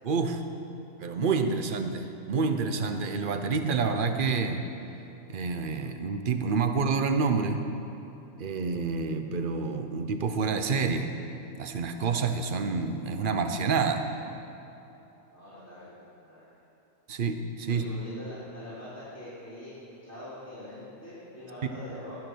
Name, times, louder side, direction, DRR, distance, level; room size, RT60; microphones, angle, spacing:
voice 1, 0.0-0.4 1.0-4.6 5.3-7.6 8.4-11.1 11.6-14.1 17.1-17.8, right 4 dB, 45° right, 7 dB, 0.9 m, -28 dB
voice 2, 15.3-16.4 17.6-19.7 20.0-22.2, left 1 dB, 55° left, -11 dB, 3.9 m, -43 dB
20.5 x 7.8 x 6.3 m, 2.9 s
omnidirectional pair, 1.4 m